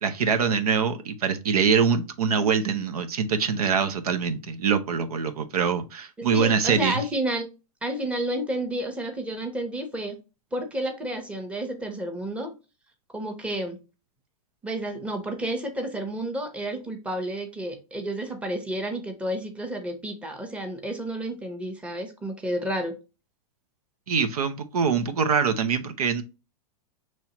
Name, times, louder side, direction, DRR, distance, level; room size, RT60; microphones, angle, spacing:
voice 1, 0.0-7.0 24.1-26.2, right 6 dB, 85° right, 0.8 m, -24 dB
voice 2, 6.2-7.5 7.8-10.2 10.5-12.5 13.1-13.8 14.6-22.9, right 1 dB, 5° right, 0.9 m, -31 dB
5.5 x 3.1 x 2.9 m
hypercardioid pair, 140°, 19 cm